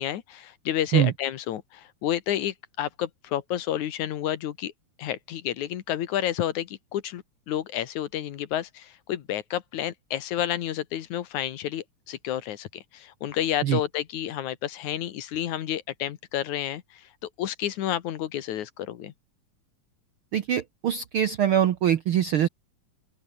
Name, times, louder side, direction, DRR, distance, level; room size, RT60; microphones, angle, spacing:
voice 1, 0.0-4.7 5.0-12.7 12.9-19.1, left 11 dB, 70° left, 2.6 m, -30 dB
voice 2, 20.3-22.5, right 10 dB, 70° right, 1.3 m, -23 dB
open air
omnidirectional pair, 3.6 m